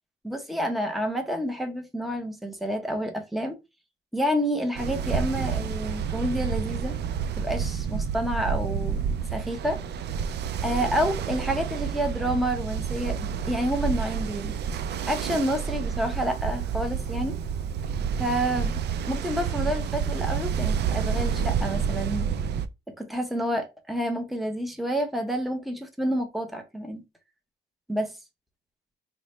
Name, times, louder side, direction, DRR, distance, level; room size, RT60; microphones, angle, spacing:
voice 1, 0.2-3.6 4.1-7.0 7.4-9.8 10.6-14.5 15.1-17.4 18.2-18.8 19.1-22.3 23.0-27.0 27.9-28.1, equal, ahead, 0.7 m, -29 dB
Ocean, 4.8-22.7, right 7 dB, 60° right, 0.4 m, -29 dB
3.1 x 2.1 x 4.2 m
cardioid pair, 90°, 20 cm